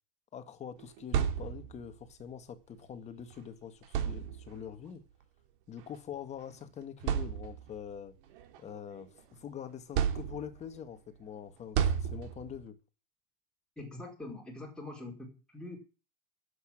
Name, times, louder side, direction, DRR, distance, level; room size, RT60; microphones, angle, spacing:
voice 1, 0.3-5.0 5.7-8.1 8.6-12.8, left 8 dB, 20° left, 9 dB, 1.9 m, -44 dB
sound 1, 0.8-1.9 3.2-3.3 3.8-4.7 5.8-6.0 6.5-6.6 7.0-7.8 8.3-9.4 9.9-10.8 11.7-12.6, right 8 dB, 60° right, 2.9 m, -32 dB
voice 2, 13.8-15.8, left 2 dB, 5° left, -1 dB, 4.6 m, -44 dB
11.0 x 8.5 x 8.7 m, 0.34 s
supercardioid pair, 155°, 30 cm